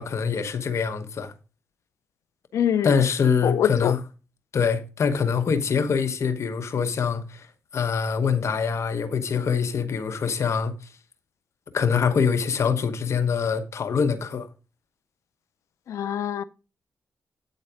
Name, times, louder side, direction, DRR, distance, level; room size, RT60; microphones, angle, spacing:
voice 1, 0.0-1.3 2.8-4.0 4.5-7.5 7.7-10.7 11.7-14.5, left 6 dB, 65° left, 1.0 m, -24 dB
voice 2, 2.5-2.9 3.4-4.0 15.9-16.4, left 9 dB, 85° left, 0.4 m, -24 dB
8.9 x 4.1 x 5.0 m
cardioid pair, 60°, 5 cm